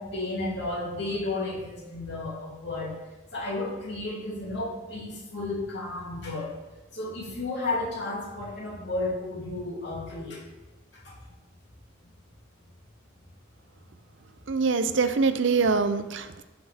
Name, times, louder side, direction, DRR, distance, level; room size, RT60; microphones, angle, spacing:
voice 1, 0.0-3.0 3.3-6.5 6.9-10.4 10.9-11.1, left 2 dB, 55° left, -4 dB, 2.9 m, -33 dB
voice 2, 14.5-16.4, right 4 dB, 65° right, 10 dB, 0.6 m, -24 dB
15.5 x 5.9 x 3.5 m, 1.1 s
head